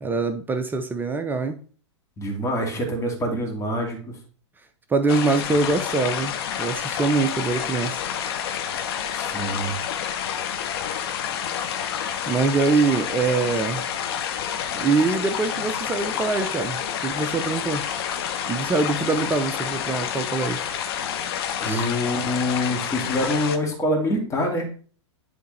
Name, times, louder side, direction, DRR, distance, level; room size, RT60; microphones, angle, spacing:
voice 1, 0.0-1.6 4.9-8.0 12.3-13.8 14.7-17.8 18.5-20.7 21.6-21.9, right 4 dB, 10° right, 0.5 m, -24 dB
voice 2, 2.2-4.2 9.1-9.7 19.1-19.2 21.6-24.7, left 1 dB, 20° left, 2.3 m, -26 dB
sound 1, 5.1-23.6, left 9 dB, 55° left, 0.9 m, -29 dB
10.5 x 3.5 x 3.2 m
figure-of-eight pair, 105°, 16 cm